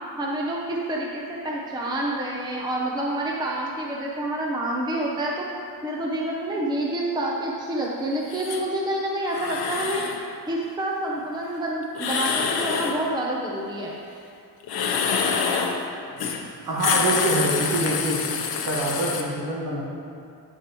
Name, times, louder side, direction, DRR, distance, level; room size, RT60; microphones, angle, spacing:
voice 1, 0.2-5.5 5.8-10.0 10.5-13.9, right 1 dB, 10° right, -3 dB, 0.6 m, -28 dB
sound 1, 8.3-8.6 9.3-10.2 11.9-13.0 14.6-15.8 16.2-16.4 16.7-19.2, left 6 dB, 70° left, 0.8 m, -26 dB
voice 2, 16.7-18.2 18.7-19.8, right 1 dB, 50° right, -3 dB, 1.4 m, -25 dB
8.8 x 6.4 x 3.0 m, 2.5 s
cardioid pair, 140°, 39 cm